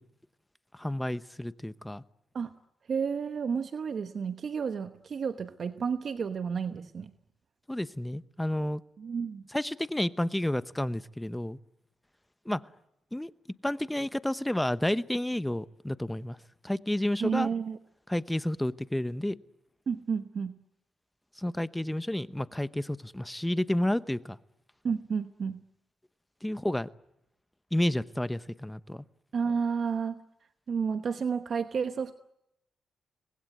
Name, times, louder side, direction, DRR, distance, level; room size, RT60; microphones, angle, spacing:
voice 1, 0.7-2.0 7.7-8.8 9.5-11.6 12.5-12.6 13.1-13.3 13.6-16.4 16.6-17.5 18.1-19.3 21.4-24.4 26.4-26.9 27.7-29.0, left 1 dB, 10° left, 14 dB, 0.9 m, -30 dB
voice 2, 2.9-7.1 9.0-9.4 17.2-17.8 19.9-20.6 24.8-25.6 29.3-30.2 30.7-32.2, right 6 dB, 55° right, 9 dB, 1.0 m, -31 dB
25.5 x 20.0 x 9.4 m, 0.84 s
supercardioid pair, 65°, 0 cm